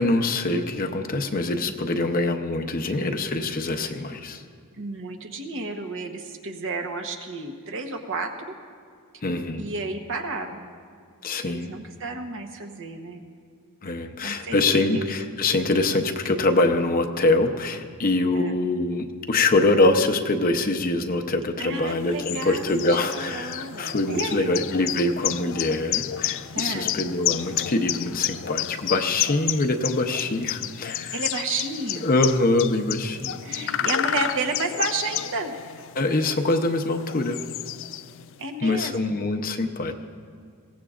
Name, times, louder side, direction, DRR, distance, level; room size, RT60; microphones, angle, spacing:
voice 1, 0.0-4.4 9.2-9.7 11.2-11.7 13.8-31.2 32.0-33.4 35.9-37.4 38.6-39.9, left 2 dB, 40° left, 6 dB, 0.7 m, -24 dB
voice 2, 4.8-8.5 9.6-10.7 11.4-13.2 14.2-14.6 14.9-15.0 18.3-18.6 21.6-24.5 26.5-27.0 31.1-32.2 33.4-35.6 38.4-39.3, right 3 dB, 60° right, 4 dB, 1.1 m, -31 dB
sound 1, 21.8-38.4, left 12 dB, 60° left, 0.4 m, -31 dB
22.0 x 17.0 x 2.5 m, 2.1 s
head